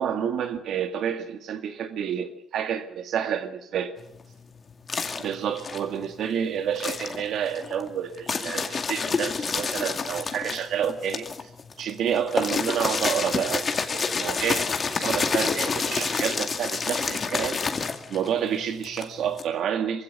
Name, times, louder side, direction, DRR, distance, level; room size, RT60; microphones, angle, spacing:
voice 1, 0.0-3.9 5.2-11.2 11.8-14.7 14.9-20.0, right 8 dB, 75° right, 7 dB, 2.1 m, -29 dB
sound 1, 4.0-6.3 6.7-19.4, left 5 dB, 40° left, 2.2 m, -29 dB
22.5 x 16.0 x 8.2 m, 0.81 s
cardioid pair, 90°, 0 cm